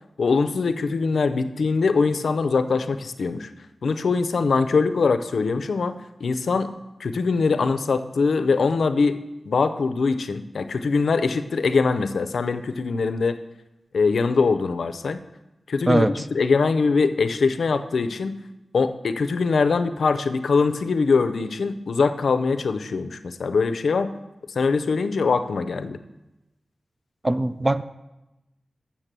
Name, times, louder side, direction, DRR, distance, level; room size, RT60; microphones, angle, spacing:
voice 1, 0.2-3.5 3.8-6.7 7.0-13.4 13.9-15.2 15.7-18.4 18.7-24.1 24.6-26.0, left 4 dB, 90° left, 11 dB, 0.5 m, -22 dB
voice 2, 15.9-16.3 27.2-27.8, right 1 dB, 20° right, 13 dB, 0.4 m, -21 dB
7.4 x 7.1 x 6.7 m, 0.99 s
wide cardioid pair, 95°, 0 cm